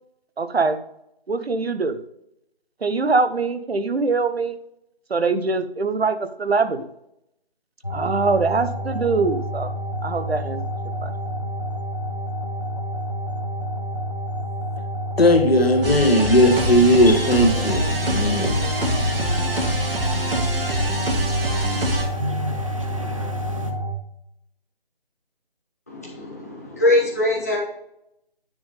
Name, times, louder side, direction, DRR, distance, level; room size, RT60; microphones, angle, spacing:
voice 1, 0.4-0.8 1.3-2.0 2.8-4.6 5.1-6.9 7.9-9.7 10.0-10.6 11.0-11.1, right 4 dB, 90° right, 0.9 m, -23 dB
sound 1, 7.8-23.9, equal, 30° left, 0.6 m, -29 dB
voice 2, 15.2-18.6, left 1 dB, 75° left, 1.7 m, -17 dB
sound 2, 15.8-22.1, right 1 dB, 70° right, 1.7 m, -25 dB
sound 3, 16.5-23.7, equal, 35° right, 0.6 m, -31 dB
voice 3, 25.9-27.6, left 1 dB, 15° left, 1.1 m, -22 dB
9.4 x 3.6 x 5.0 m
figure-of-eight pair, 175°, 30 cm